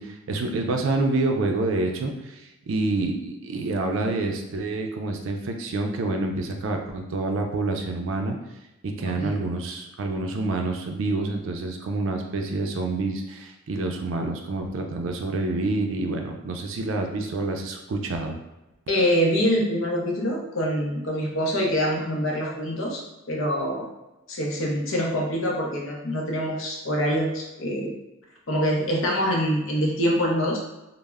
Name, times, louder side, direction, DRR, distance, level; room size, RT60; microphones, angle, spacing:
voice 1, 0.0-8.4 8.8-18.4, right 2 dB, 65° right, 3 dB, 0.4 m, -27 dB
voice 2, 18.9-23.0 23.3-23.9 24.3-28.0 28.5-30.6, equal, 70° left, -1 dB, 0.6 m, -25 dB
2.1 x 2.0 x 3.4 m, 1.0 s
head